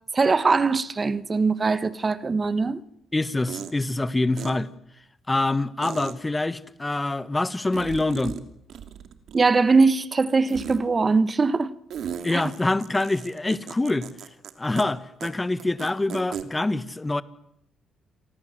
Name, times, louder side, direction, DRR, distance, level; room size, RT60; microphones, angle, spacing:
voice 1, 0.1-2.8 9.3-11.7 12.3-12.5, right 4 dB, 30° right, 1.3 m, -21 dB
voice 2, 3.1-4.7 5.3-8.4 12.2-14.1 14.6-17.2, left 2 dB, 15° left, 1.5 m, -25 dB
sound 1, 3.5-3.7 4.4-4.5 5.8-6.1 7.7-8.4 8.7-9.6 10.5-10.8 11.9-14.5 14.8-14.9 15.2-15.3 15.6-16.4, right 8 dB, 65° right, 2.8 m, -36 dB
29.0 x 23.0 x 7.8 m
cardioid pair, 75°, 0 cm